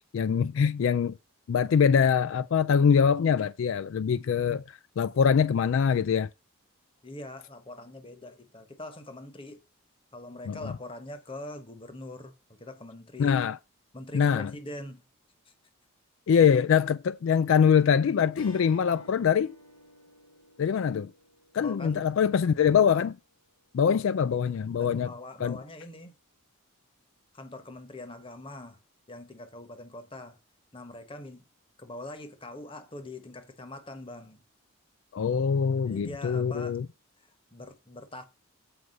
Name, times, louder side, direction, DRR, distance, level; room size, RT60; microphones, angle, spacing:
voice 1, 0.1-1.1 1.5-6.3 10.5-10.6 13.2-13.6 14.1-14.5 16.3-19.5 20.6-21.1 21.5-23.2 23.7-25.1 25.4-25.6 35.1-36.9, left 7 dB, 65° left, 0.3 m, -23 dB
voice 2, 7.0-9.6 10.1-13.4 13.9-15.0 21.6-22.1 24.8-26.1 27.3-28.8 29.1-30.4 30.7-31.4 31.8-34.4 35.9-36.8 37.5-38.2, left 2 dB, 25° left, 1.1 m, -43 dB
Strum, 18.3-23.0, equal, 90° left, 2.1 m, -51 dB
8.0 x 4.9 x 5.2 m
head